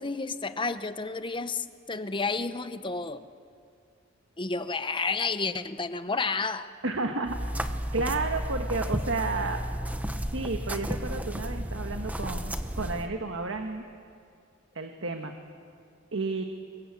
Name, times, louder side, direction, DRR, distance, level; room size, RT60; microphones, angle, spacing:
voice 1, 0.0-3.3 4.4-6.7, left 4 dB, 25° left, 11 dB, 0.9 m, -31 dB
voice 2, 6.8-7.5 7.9-9.6 10.3-13.8 14.7-15.3 16.1-16.4, right 3 dB, 70° right, 5 dB, 1.4 m, -31 dB
sound 1, 7.2-13.1, equal, 10° right, 1.0 m, -33 dB
29.0 x 23.0 x 8.2 m, 2.3 s
head